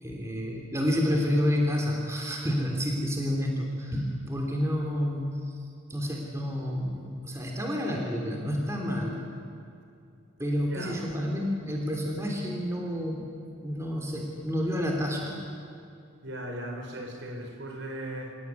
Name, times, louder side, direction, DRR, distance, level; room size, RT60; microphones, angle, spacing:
voice 1, 0.0-5.4 5.9-9.2 10.4-13.3 13.6-15.3, equal, 15° right, 0 dB, 3.1 m, -29 dB
voice 2, 10.6-11.0 16.2-18.3, right 1 dB, 65° right, 3 dB, 4.4 m, -37 dB
27.5 x 17.0 x 9.7 m, 2.5 s
head